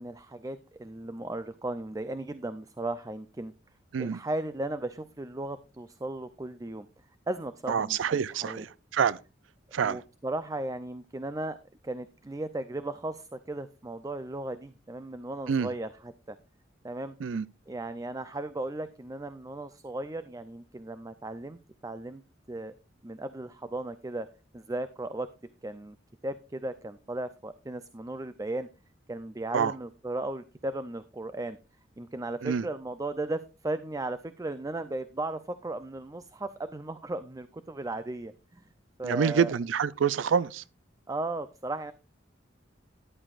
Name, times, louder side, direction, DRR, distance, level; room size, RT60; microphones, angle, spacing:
voice 1, 0.0-3.5 4.0-6.9 7.3-8.7 9.8-11.6 11.8-16.4 16.8-17.1 17.7-22.2 22.5-22.7 23.0-24.3 24.5-25.3 25.6-26.0 26.2-28.7 29.1-31.6 32.0-38.6 39.0-39.5 41.1-41.9, right 2 dB, 20° right, 0.5 m, -36 dB
voice 2, 7.7-9.2 9.7-10.0 15.5-15.7 17.2-17.4 29.5-29.7 32.4-32.6 39.0-40.6, right 7 dB, 85° right, 0.4 m, -27 dB
13.5 x 11.0 x 2.5 m
head